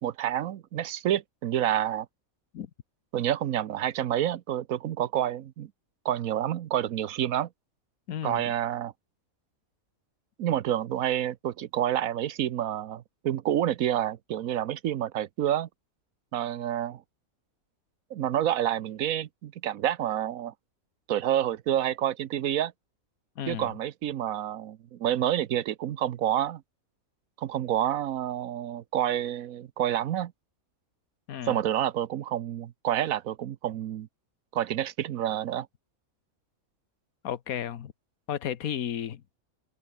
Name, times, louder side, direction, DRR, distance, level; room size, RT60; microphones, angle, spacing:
voice 1, 0.0-2.1 3.1-5.7 6.0-7.5 8.2-8.9 10.4-15.7 16.3-17.0 18.1-20.5 21.1-22.7 23.5-26.6 27.4-30.3 31.4-34.1 34.5-35.7, right 11 dB, 75° right, 1.2 m, -28 dB
voice 2, 8.1-8.5 23.4-23.7 31.3-31.6 37.2-37.9 38.3-39.2, left 9 dB, 80° left, 1.4 m, -33 dB
omnidirectional pair, 1.5 m